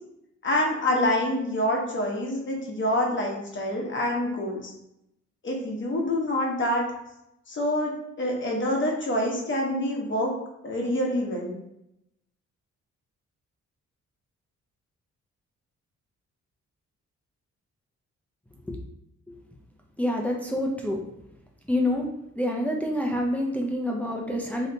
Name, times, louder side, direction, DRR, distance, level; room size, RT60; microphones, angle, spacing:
voice 1, 0.4-4.7 5.4-6.9 7.5-10.3 10.6-11.5, left 1 dB, 40° left, -1 dB, 0.9 m, -26 dB
voice 2, 20.0-21.0 21.7-22.1 22.4-24.7, left 1 dB, 5° left, 0 dB, 0.5 m, -27 dB
3.1 x 2.8 x 2.7 m, 0.81 s
cardioid pair, 95°, 29 cm